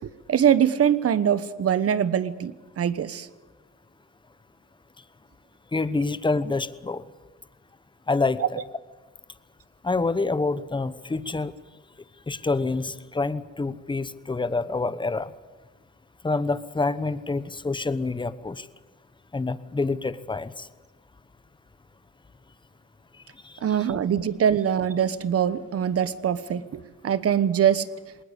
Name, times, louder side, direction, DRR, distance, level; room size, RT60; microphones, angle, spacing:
voice 1, 0.3-3.3 8.4-8.5 23.6-27.8, right 9 dB, 50° right, 15 dB, 1.1 m, -23 dB
voice 2, 5.7-7.0 8.1-8.6 9.8-11.5 12.3-15.3 16.2-18.6 19.3-20.7 23.4-24.0, left 3 dB, 15° left, 14 dB, 1.0 m, -27 dB
20.0 x 19.5 x 8.3 m, 1.2 s
cardioid pair, 90°, 30 cm